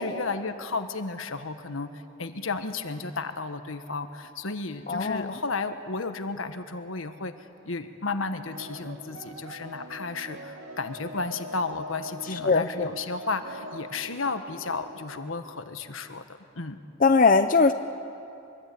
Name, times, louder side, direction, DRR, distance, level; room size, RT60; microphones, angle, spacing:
voice 1, 0.0-16.2 16.5-16.8, left 3 dB, 80° left, 8 dB, 1.4 m, -33 dB
voice 2, 4.9-5.3 12.4-12.9 17.0-17.7, left 4 dB, 40° left, 8 dB, 0.6 m, -20 dB
sound 1, 8.4-15.3, equal, 80° right, 2.3 m, -43 dB
24.0 x 23.0 x 8.6 m, 2.6 s
head